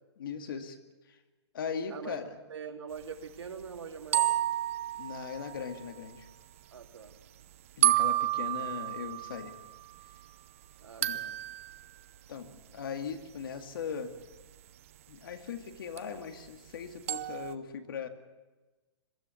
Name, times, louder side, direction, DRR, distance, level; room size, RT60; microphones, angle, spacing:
voice 1, 0.2-0.8 1.1-1.2 1.5-2.4 5.0-6.3 7.8-9.6 11.0-11.2 12.3-14.1 15.1-18.1, left 6 dB, 50° left, 7 dB, 2.3 m, -39 dB
voice 2, 1.9-2.2 2.5-4.3 6.7-7.2 10.8-11.3, right 6 dB, 85° right, 3 dB, 3.3 m, -43 dB
sound 1, 4.1-6.0 7.8-10.1 11.0-11.8 16.0-16.1 17.1-17.5, right 15 dB, 30° right, 0.6 m, -30 dB
22.5 x 13.5 x 9.4 m, 1.2 s
hypercardioid pair, 170°, 14 cm